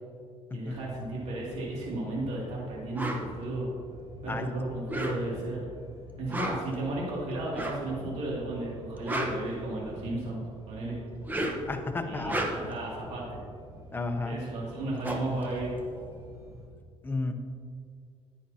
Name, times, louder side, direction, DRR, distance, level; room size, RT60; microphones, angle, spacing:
voice 1, 0.5-3.7 4.2-5.7 6.2-11.0 12.1-13.4 14.2-15.7, right 2 dB, 65° right, -5 dB, 2.6 m, -34 dB
sound 1, 0.7-16.7, equal, 30° right, 2.5 m, -49 dB
sound 2, 3.0-3.2 4.8-5.5 6.2-6.8 7.5-7.9 8.8-10.1 11.1-11.7 12.1-12.8 14.4-14.5 14.7-16.4, right 1 dB, 15° right, 1.1 m, -34 dB
voice 2, 11.7-12.3 13.9-14.4 17.0-17.3, left 3 dB, 15° left, 5 dB, 0.8 m, -32 dB
11.0 x 9.5 x 2.9 m, 2.2 s
cardioid pair, 115°, 12 cm